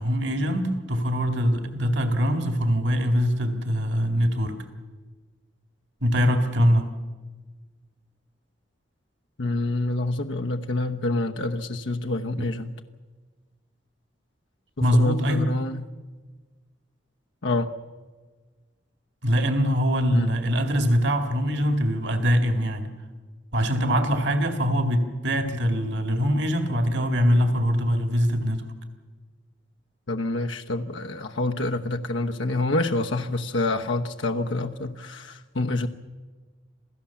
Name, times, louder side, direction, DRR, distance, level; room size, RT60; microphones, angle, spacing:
voice 1, 0.0-4.6 6.0-6.9 12.4-12.5 14.8-15.5 19.2-22.9 23.5-28.6, equal, 65° right, 6 dB, 2.2 m, -23 dB
voice 2, 9.4-12.7 14.8-15.9 17.4-17.7 20.1-20.3 30.1-35.9, left 2 dB, 80° left, 4 dB, 1.0 m, -27 dB
27.5 x 16.5 x 7.2 m, 1.4 s
head